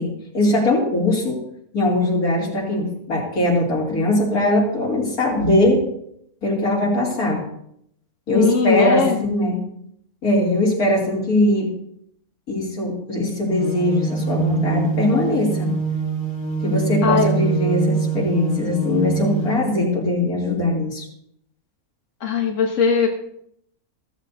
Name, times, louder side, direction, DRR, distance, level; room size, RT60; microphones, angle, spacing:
voice 1, 0.0-1.4 1.7-5.8 6.4-7.5 8.3-9.6 10.2-11.7 12.5-15.7 16.6-21.1, left 1 dB, 85° left, -3 dB, 3.6 m, -20 dB
voice 2, 8.3-9.2 17.0-17.3 22.2-23.1, left 6 dB, 60° left, 1 dB, 1.4 m, -19 dB
sound 1, 13.6-19.5, right 6 dB, 35° left, 2.0 m, -24 dB
15.0 x 14.0 x 2.7 m, 0.72 s
omnidirectional pair, 1.5 m